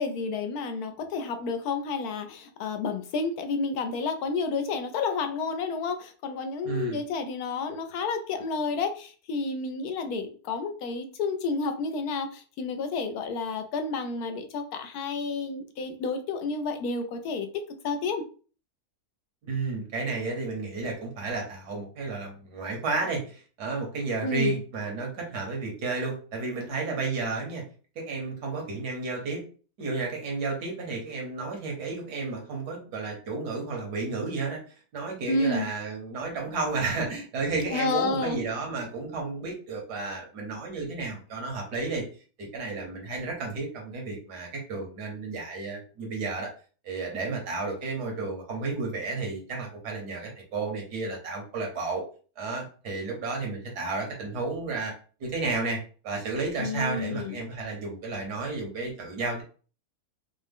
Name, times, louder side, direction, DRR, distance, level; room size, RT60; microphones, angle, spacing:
voice 1, 0.0-17.5 17.8-18.2 24.2-24.6 35.3-35.7 37.7-38.4 56.6-57.4, left 4 dB, 75° left, 7 dB, 1.1 m, -30 dB
voice 2, 6.6-7.0 19.4-27.6 28.0-29.4 29.8-34.6 34.9-42.1 42.4-46.5 46.8-52.0 52.4-54.9 55.2-55.8 56.0-59.4, right 3 dB, 85° right, 1 dB, 1.8 m, -32 dB
4.9 x 2.1 x 3.5 m, 0.39 s
omnidirectional pair, 1.7 m